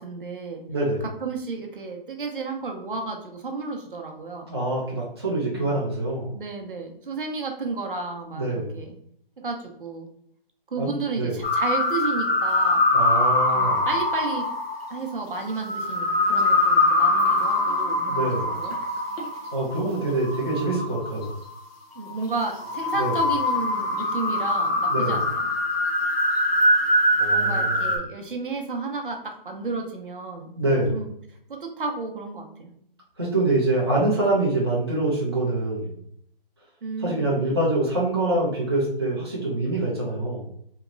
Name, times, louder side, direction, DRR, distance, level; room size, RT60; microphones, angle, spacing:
voice 1, 0.0-0.6 1.2-4.5 6.3-9.0 9.4-10.1 10.7-12.9 13.5-14.5 14.9-18.8 22.0-25.5 27.3-30.5 30.9-31.1 31.5-32.7 36.8-37.3, right 4 dB, 60° right, 2 dB, 0.7 m, -32 dB
voice 2, 0.7-1.0 4.5-6.3 8.3-8.7 10.8-11.4 12.9-13.9 18.1-18.5 19.5-21.3 23.0-23.2 24.9-25.2 27.2-27.9 30.6-31.0 33.2-36.0 37.0-40.5, right 2 dB, 25° right, -6 dB, 0.5 m, -25 dB
sound 1, 11.4-21.5 22.0-28.0, left 1 dB, 85° left, 0.9 m, -23 dB
3.0 x 2.8 x 2.4 m, 0.68 s
hypercardioid pair, 175°, 29 cm